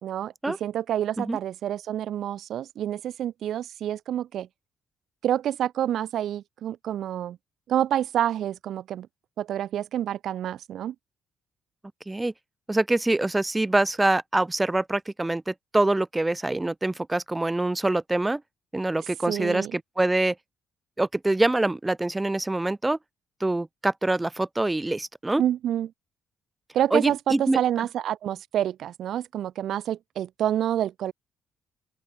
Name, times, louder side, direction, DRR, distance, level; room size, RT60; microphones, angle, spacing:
voice 1, 0.0-4.5 5.2-7.4 7.7-9.1 9.4-10.9 19.3-19.7 25.4-25.9 26.7-31.1, right 11 dB, 70° right, 1.4 m, -28 dB
voice 2, 12.7-18.4 18.7-20.3 21.0-23.0 23.4-25.4 26.9-27.6, right 2 dB, 15° right, 1.7 m, -25 dB
open air
cardioid pair, 90°, 0 cm